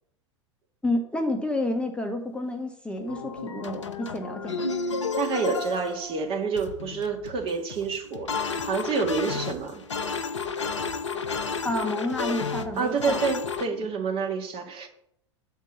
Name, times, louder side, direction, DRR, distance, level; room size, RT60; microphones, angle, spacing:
voice 1, 0.8-4.7 11.6-13.2, left 1 dB, 5° left, 3 dB, 0.9 m, -30 dB
sound 1, 3.0-13.7, left 4 dB, 80° left, 0.7 m, -32 dB
voice 2, 5.2-9.8 12.8-14.9, right 5 dB, 40° right, 3 dB, 1.7 m, -28 dB
6.8 x 4.5 x 6.8 m, 0.74 s
figure-of-eight pair, 90°, 15 cm